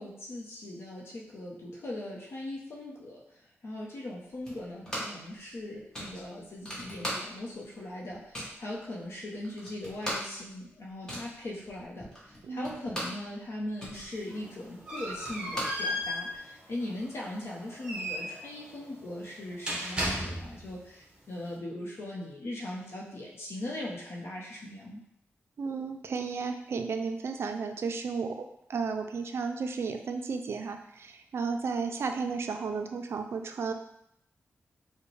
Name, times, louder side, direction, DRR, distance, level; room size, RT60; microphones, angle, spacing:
voice 1, 0.0-3.2 3.6-25.0, left 1 dB, 60° left, -3 dB, 0.7 m, -40 dB
sound 1, 4.4-5.3 5.5-5.6 5.9-7.6 7.9-8.6 9.1-9.2 9.4-13.3 13.6-16.4, equal, 15° left, 1.0 m, -39 dB
voice 2, 12.4-12.8 25.6-33.7, right 5 dB, 60° right, 6 dB, 0.4 m, -33 dB
sound 2, 14.1-20.7, equal, 20° right, 0.9 m, -36 dB
4.9 x 2.1 x 3.2 m, 0.75 s
wide cardioid pair, 165°, 5 cm